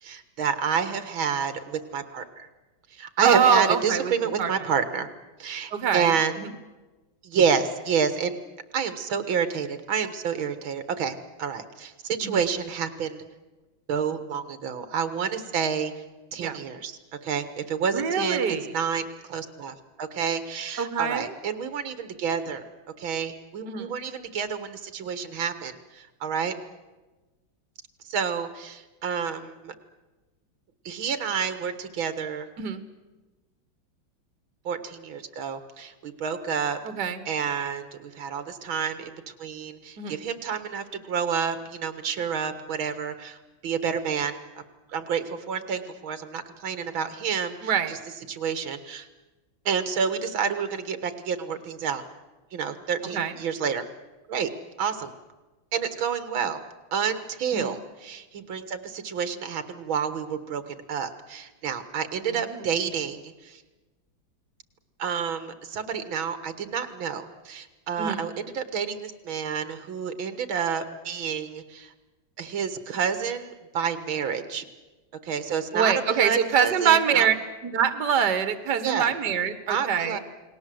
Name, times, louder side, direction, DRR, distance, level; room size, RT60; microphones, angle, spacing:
voice 1, 0.0-2.5 2.9-5.1 5.4-6.4 7.2-8.4 8.7-13.2 13.9-16.0 16.3-22.6 23.0-26.5 28.1-29.7 30.9-32.5 34.7-36.8 37.3-43.4 43.6-44.6 44.9-48.0 48.3-49.1 49.7-52.0 52.5-53.9 54.3-54.5 54.8-55.1 55.7-56.6 56.9-63.6 65.0-71.9 72.4-74.7 75.2-77.3 78.8-79.1 79.7-80.2, right 6 dB, 85° right, 11 dB, 2.3 m, -29 dB
voice 2, 3.2-4.1 4.4-4.5 5.7-6.5 12.2-12.4 16.4-16.6 17.9-18.7 20.8-21.3 23.7-23.9 32.6-32.8 36.9-37.2 40.0-40.1 47.6-47.9 53.1-53.3 57.5-57.8 62.5-62.6 68.0-68.3 75.7-77.4 77.6-80.2, right 7 dB, 60° right, 11 dB, 2.1 m, -24 dB
30.0 x 20.0 x 7.8 m, 1.2 s
omnidirectional pair, 2.1 m